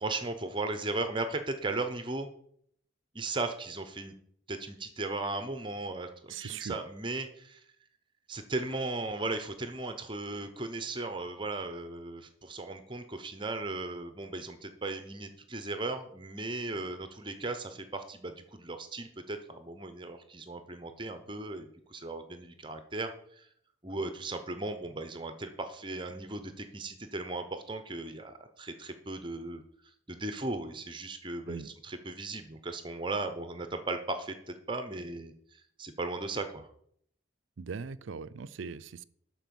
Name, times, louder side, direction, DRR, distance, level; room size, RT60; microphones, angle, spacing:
voice 1, 0.0-2.3 3.1-4.1 4.5-7.6 8.3-23.5 23.8-29.6 30.1-36.7, right 2 dB, 25° right, 8 dB, 0.8 m, -37 dB
voice 2, 6.3-6.8 31.5-31.7 37.6-39.0, right 5 dB, 80° right, 15 dB, 0.5 m, -40 dB
12.0 x 4.6 x 7.0 m, 0.68 s
head